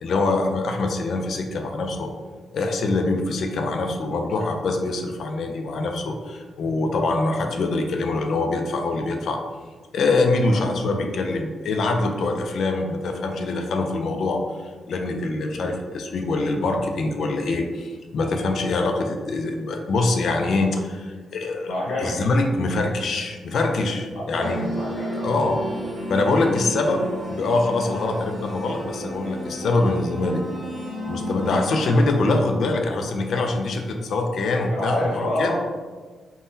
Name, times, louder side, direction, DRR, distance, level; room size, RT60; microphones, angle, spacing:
voice 1, 0.0-2.1 2.5-9.4 9.9-14.4 14.9-21.7 22.0-24.7 25.2-25.6 26.1-30.4 31.1-35.5, left 2 dB, 65° left, 3 dB, 0.3 m, -24 dB
voice 2, 21.7-22.2 24.1-25.4 34.6-35.5, left 1 dB, 85° left, -5 dB, 0.8 m, -28 dB
sound 1, 24.4-32.0, equal, 20° right, 0.6 m, -32 dB
3.6 x 2.1 x 2.6 m, 1.4 s
cardioid pair, 120°, 0 cm